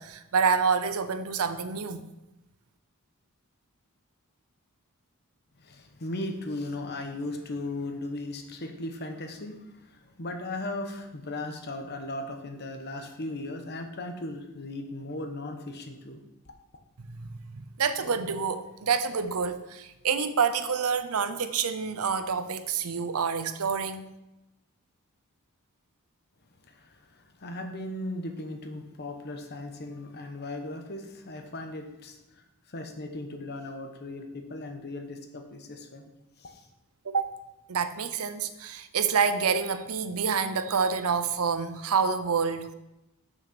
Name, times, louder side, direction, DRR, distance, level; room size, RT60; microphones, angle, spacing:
voice 1, 0.0-2.1 17.3-24.1 37.0-37.3 37.7-42.7, right 6 dB, 75° right, 0.6 m, -27 dB
voice 2, 5.6-16.2 26.7-36.1 36.4-36.7, left 2 dB, 50° left, 1.0 m, -37 dB
6.3 x 6.3 x 6.1 m
head